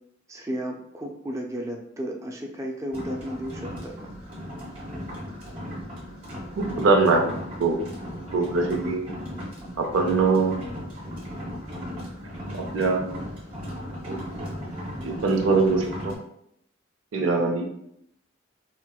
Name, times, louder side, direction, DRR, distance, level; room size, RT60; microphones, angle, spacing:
voice 1, 0.3-4.1 8.4-8.5 8.8-8.9 17.2-17.5, equal, 15° right, 1 dB, 0.3 m, -33 dB
sound 1, 2.9-16.2, equal, 30° right, 1.0 m, -36 dB
voice 2, 6.6-7.8 8.3-9.1 9.8-10.6 12.5-13.0 14.1-14.5 15.0-16.2 17.1-17.6, right 4 dB, 90° right, 3 dB, 0.5 m, -23 dB
4.3 x 2.1 x 2.3 m, 0.74 s
head